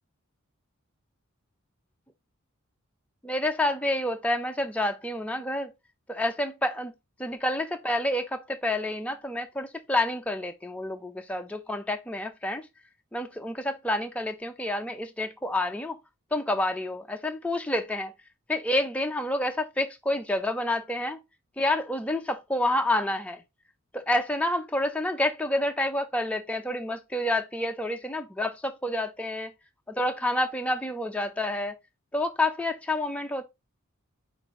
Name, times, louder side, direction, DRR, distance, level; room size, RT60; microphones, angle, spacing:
voice 1, 3.2-5.7 6.1-6.9 7.2-12.7 13.1-16.0 16.3-18.1 18.5-21.2 21.6-23.4 23.9-29.5 29.9-31.8 32.1-33.5, left 1 dB, 5° left, 0.4 m, -28 dB
4.9 x 2.5 x 4.0 m
head